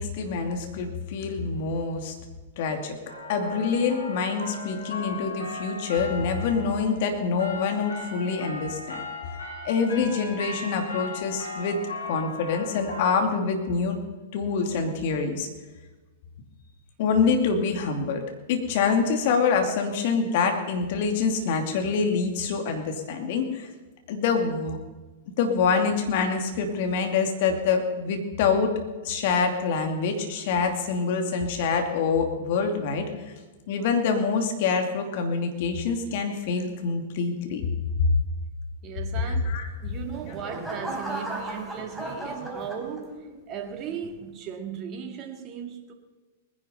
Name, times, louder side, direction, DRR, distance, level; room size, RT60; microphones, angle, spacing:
voice 1, 0.0-2.1 2.6-3.0 3.3-9.0 9.6-14.0 14.3-15.5 17.0-18.2 18.5-23.7 24.1-24.8 25.3-28.7 29.0-33.1 33.7-37.7 38.0-38.1 39.2-39.7, left 5 dB, 55° left, 2.5 m, -26 dB
sound 1, 3.1-13.2, left 2 dB, 85° left, 6.2 m, -38 dB
voice 2, 38.8-39.4 39.8-45.9, right 8 dB, 35° right, 2.2 m, -37 dB
sound 2, 39.8-43.4 43.9-44.3, right 2 dB, 5° right, 4.2 m, -36 dB
20.5 x 10.5 x 5.5 m
figure-of-eight pair, 105°, 0 cm